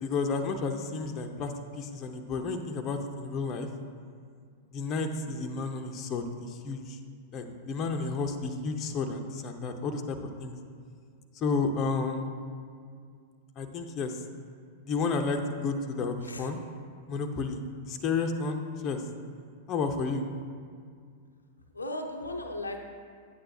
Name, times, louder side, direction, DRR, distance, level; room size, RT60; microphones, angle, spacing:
voice 1, 0.0-3.7 4.7-7.0 7.3-10.6 11.4-12.3 13.6-14.2 14.8-16.6 17.1-19.0 19.7-20.3, left 4 dB, 35° left, 5 dB, 0.6 m, -31 dB
voice 2, 21.7-22.8, left 1 dB, 85° left, 3 dB, 0.6 m, -36 dB
8.8 x 8.6 x 2.7 m, 2.1 s
figure-of-eight pair, 95°, 0 cm